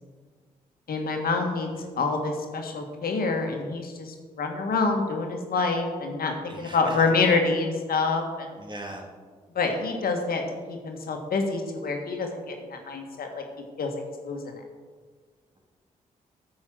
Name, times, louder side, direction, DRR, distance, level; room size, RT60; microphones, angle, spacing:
voice 1, 0.9-1.7 2.0-8.5 9.5-10.4 10.7-13.4 13.8-13.9 14.2-14.5, left 4 dB, 70° left, 3 dB, 1.6 m, -27 dB
voice 2, 6.5-7.1 8.6-9.1, right 1 dB, 30° right, 0 dB, 2.8 m, -39 dB
9.0 x 5.5 x 7.6 m, 1.5 s
supercardioid pair, 50°, 16 cm